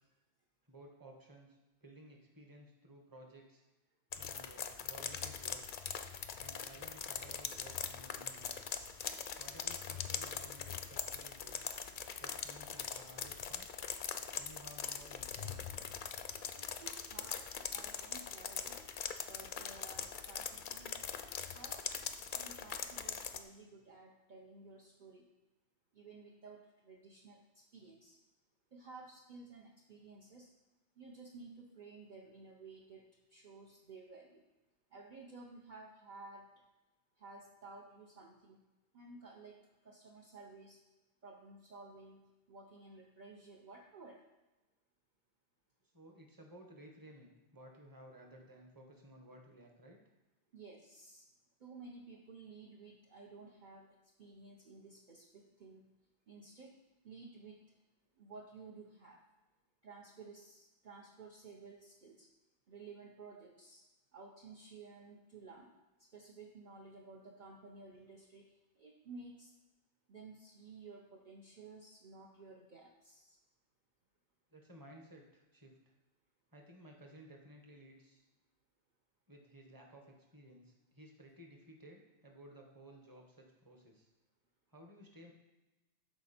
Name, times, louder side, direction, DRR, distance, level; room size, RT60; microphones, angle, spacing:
voice 1, 0.6-3.6 4.2-5.7 6.4-8.6 9.4-11.6 12.2-13.7 14.4-15.6 45.9-50.0 74.5-75.9 76.5-78.2 79.3-84.1 84.7-85.3, right 1 dB, 20° right, 1 dB, 1.2 m, -56 dB
sound 1, 4.1-23.4, left 7 dB, 55° left, 0.6 m, -42 dB
voice 2, 16.5-18.8 19.2-21.1 21.5-21.9 22.3-25.3 25.9-28.2 28.7-30.5 31.0-34.4 34.9-36.6 37.2-38.7 38.9-40.8 41.2-44.2 50.5-51.3 51.6-55.9 56.3-56.8 57.0-57.8 58.2-59.2 59.8-62.3 62.7-63.9 64.1-65.7 66.0-69.5 70.1-73.4, right 3 dB, 45° right, -1 dB, 0.9 m, -54 dB
13.0 x 4.3 x 4.3 m, 1.1 s
omnidirectional pair, 1.2 m